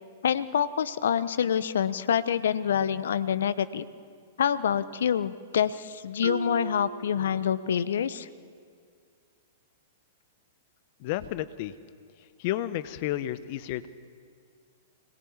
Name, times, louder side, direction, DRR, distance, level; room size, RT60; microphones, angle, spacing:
voice 1, 0.2-3.9 4.4-8.3, left 8 dB, 70° left, 15 dB, 0.9 m, -26 dB
Marimba xylophone, 6.2-8.0, right 8 dB, 55° right, 3.9 m, -39 dB
voice 2, 11.0-11.7 12.4-13.9, left 14 dB, 50° left, 14 dB, 1.1 m, -31 dB
25.5 x 20.5 x 7.3 m, 2.2 s
figure-of-eight pair, 105°, 0 cm